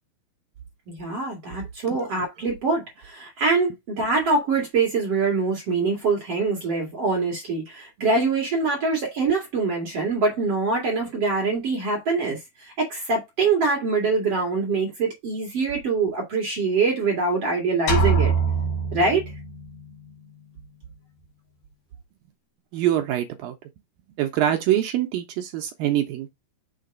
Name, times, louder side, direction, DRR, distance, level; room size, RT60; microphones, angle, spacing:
voice 1, 0.9-18.3 18.9-19.3, right 4 dB, 45° right, 2.3 m, -24 dB
sound 1, 17.9-19.7, right 4 dB, 70° left, 3.3 m, -23 dB
voice 2, 22.7-23.5 24.2-26.4, right 12 dB, 80° right, 2.2 m, -24 dB
6.7 x 3.3 x 5.2 m
omnidirectional pair, 4.6 m